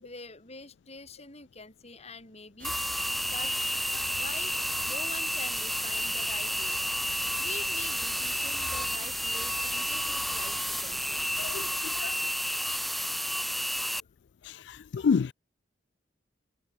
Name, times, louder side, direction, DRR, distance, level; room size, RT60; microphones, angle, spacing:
voice 1, 0.0-2.8 3.2-4.5 4.9-6.8 7.4-11.3, left 3 dB, 35° left, 5.2 m, -45 dB
sound 1, 2.6-14.0, equal, ahead, 0.7 m, -31 dB
sound 2, 2.6-11.7, right 5 dB, 50° right, 3.6 m, -47 dB
voice 2, 11.4-12.3 14.4-15.3, left 5 dB, 70° left, 0.4 m, -30 dB
head